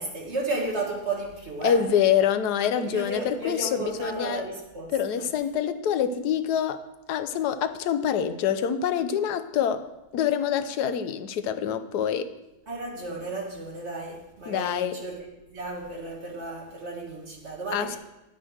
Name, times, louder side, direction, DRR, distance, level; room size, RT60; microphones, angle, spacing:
voice 1, 0.0-1.8 2.7-4.9 12.7-18.0, right 2 dB, 45° right, 2.0 m, -33 dB
voice 2, 1.6-4.4 4.9-12.3 14.5-15.0 17.7-18.0, left 8 dB, 90° left, 1.2 m, -26 dB
10.5 x 5.4 x 6.3 m
omnidirectional pair, 1.7 m